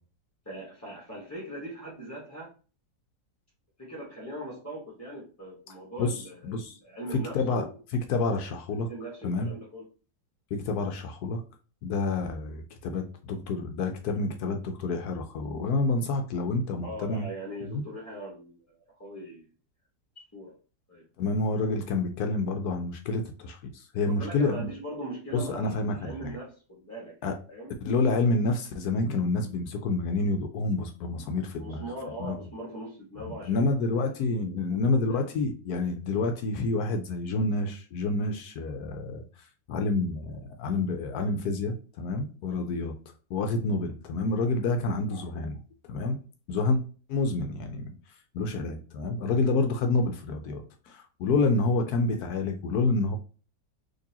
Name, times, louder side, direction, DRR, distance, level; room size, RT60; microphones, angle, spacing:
voice 1, 0.4-2.5 3.8-7.8 8.8-9.9 16.8-18.6 19.0-19.5 20.1-20.6 20.9-21.1 24.1-27.7 31.5-34.1 34.7-35.2, right 1 dB, 10° left, -4 dB, 0.8 m, -40 dB
voice 2, 6.4-6.8 7.1-7.6 7.9-8.9 9.2-9.5 10.5-11.4 11.8-17.3 17.7-17.8 21.2-24.7 25.3-26.4 27.2-27.3 27.8-31.9 32.2-32.4 33.2-39.2 39.7-42.9 43.3-45.6 45.9-46.2 46.5-46.8 47.1-47.9 48.3-53.2, left 3 dB, 70° left, 5 dB, 1.0 m, -28 dB
3.9 x 2.9 x 2.8 m, 0.37 s
omnidirectional pair, 1.9 m